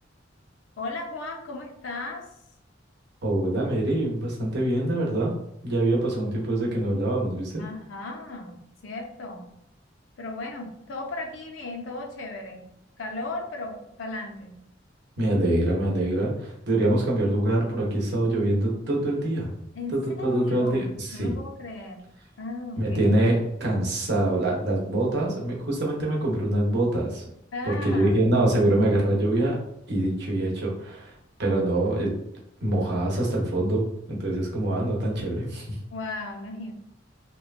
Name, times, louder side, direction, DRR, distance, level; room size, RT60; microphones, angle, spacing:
voice 1, 0.8-2.3 7.6-9.5 10.2-12.7 13.0-14.5 19.7-22.0 22.4-23.2 27.5-28.2 35.9-36.7, left 2 dB, 85° left, 3 dB, 0.5 m, -36 dB
voice 2, 3.2-5.3 5.6-7.6 15.2-19.5 19.9-21.4 22.8-27.2 27.6-29.6 29.9-31.1 31.4-32.2 32.6-35.7, right 1 dB, 60° right, -2 dB, 0.8 m, -24 dB
3.0 x 2.1 x 2.4 m, 0.80 s
head